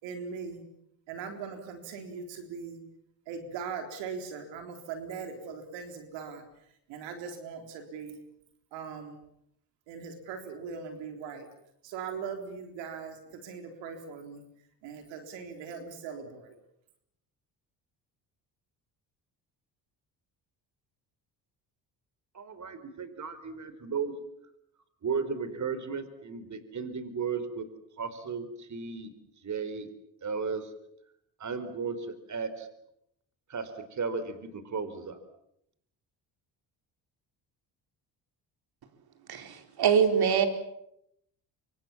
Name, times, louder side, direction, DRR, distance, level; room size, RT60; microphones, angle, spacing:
voice 1, 0.0-0.6 1.1-2.8 3.3-6.4 6.9-8.2 8.7-9.2 9.9-11.5 11.8-14.4 14.8-16.5, right 6 dB, 90° right, 6 dB, 4.0 m, -40 dB
voice 2, 22.3-24.1 25.0-27.7 28.0-29.1 29.4-29.9 30.2-30.6 31.4-32.7 33.5-35.2, right 5 dB, 40° right, 12 dB, 4.4 m, -35 dB
voice 3, 39.3-40.5, right 7 dB, 60° right, 7 dB, 4.5 m, -24 dB
27.5 x 25.5 x 7.3 m, 0.76 s
supercardioid pair, 80°, 42 cm